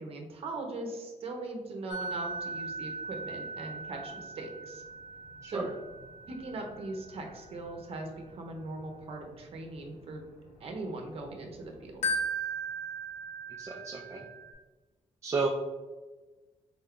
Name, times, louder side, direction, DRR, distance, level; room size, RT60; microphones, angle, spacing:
voice 1, 0.0-4.8 5.5-5.7 6.3-10.2 10.6-12.2, right 2 dB, 60° right, 2 dB, 0.7 m, -40 dB
sound 1, 1.9-11.3 11.7-14.5, right 2 dB, 90° left, 0.7 m, -38 dB
voice 2, 13.6-14.3 15.2-15.5, right 4 dB, 25° right, 0 dB, 0.4 m, -32 dB
3.8 x 2.2 x 3.6 m, 1.2 s
cardioid pair, 120°, 11 cm